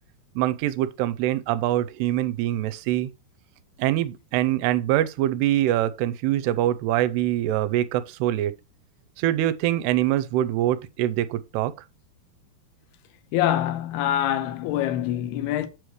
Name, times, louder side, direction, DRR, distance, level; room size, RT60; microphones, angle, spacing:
voice 1, 0.4-3.1 3.8-8.5 9.2-11.7, right 13 dB, 85° right, 2.6 m, -24 dB
voice 2, 13.3-15.7, left 12 dB, 80° left, 2.7 m, -25 dB
8.3 x 6.4 x 3.1 m
omnidirectional pair, 4.8 m